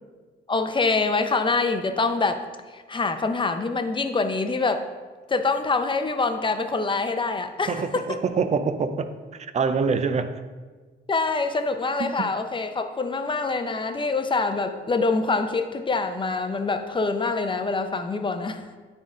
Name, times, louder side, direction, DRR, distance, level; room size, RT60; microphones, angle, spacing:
voice 1, 0.5-2.4 2.7-4.9 5.3-8.0 11.1-18.6, left 3 dB, 25° left, 7 dB, 0.6 m, -25 dB
voice 2, 7.7-10.4 12.0-12.3, right 5 dB, 35° right, 10 dB, 0.5 m, -26 dB
9.5 x 3.8 x 3.7 m, 1.4 s
cardioid pair, 90°, 20 cm